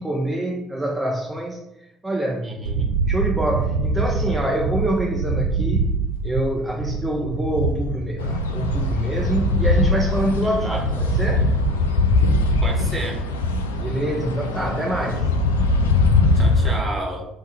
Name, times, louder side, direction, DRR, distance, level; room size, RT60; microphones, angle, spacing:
voice 1, 0.0-1.6 2.0-2.6 3.1-5.9 6.2-11.5 13.8-15.3, right 1 dB, 15° right, -1 dB, 0.6 m, -25 dB
voice 2, 2.4-2.9 10.4-10.9 12.6-13.3 16.3-17.3, right 1 dB, 30° right, 0 dB, 1.3 m, -31 dB
sound 1, 2.6-12.9, right 4 dB, 70° right, 0.3 m, -26 dB
sound 2, 8.2-16.8, left 3 dB, 80° left, 0.3 m, -21 dB
4.6 x 2.3 x 4.5 m, 0.90 s
figure-of-eight pair, 50°, 0 cm